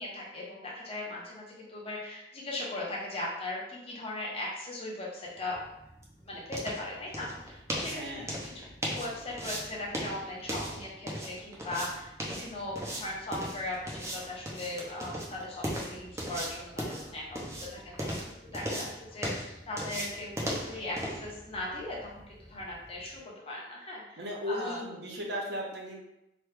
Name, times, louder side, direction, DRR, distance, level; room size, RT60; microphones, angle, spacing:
voice 1, 0.0-5.6 6.2-8.5 8.9-24.2 24.5-24.9, left 2 dB, 35° left, -4 dB, 0.8 m, -39 dB
sound 1, 5.4-23.2, equal, 15° right, 0.5 m, -38 dB
voice 2, 7.9-8.3 24.2-26.0, equal, 65° right, -1 dB, 0.7 m, -36 dB
3.0 x 2.3 x 3.2 m, 0.88 s
head